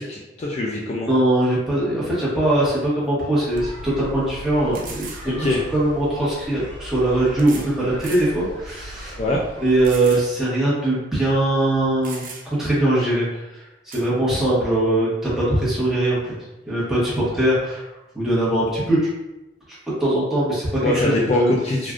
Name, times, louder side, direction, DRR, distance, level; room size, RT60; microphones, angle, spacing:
voice 1, 0.0-1.1 5.2-5.6 9.2-9.4 20.8-21.9, left 2 dB, 35° left, -2 dB, 0.3 m, -23 dB
voice 2, 1.1-5.5 5.7-9.2 9.6-16.4 16.7-17.9 18.1-19.1 19.9-21.5, right 1 dB, ahead, -9 dB, 1.0 m, -21 dB
sound 1, 3.0-3.1 3.6-3.7 4.7-5.3 6.4-6.5 7.4-7.7 8.0-8.3 8.8-8.9 9.8-10.3 10.6-10.7 11.6-11.7 12.0-12.7 13.9-14.1, right 5 dB, 50° right, 0.4 m, -38 dB
sound 2, 3.5-10.0, equal, 85° right, 1.1 m, -38 dB
3.4 x 2.4 x 2.4 m, 0.98 s
head